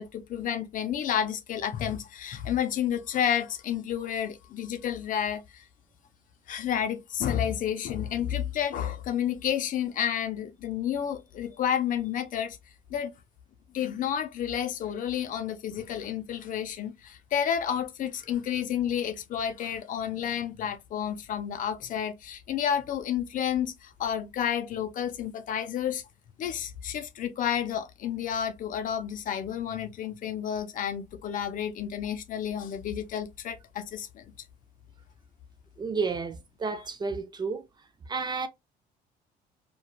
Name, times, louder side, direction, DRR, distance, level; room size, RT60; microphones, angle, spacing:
voice 1, 0.0-5.6 6.5-12.6 12.9-13.1 13.7-26.0 26.4-34.2, left 9 dB, 50° left, 0.5 m, -30 dB
voice 2, 35.8-37.6 38.1-38.5, right 4 dB, 25° right, 0.3 m, -31 dB
3.0 x 2.2 x 2.2 m
cardioid pair, 110°, 17 cm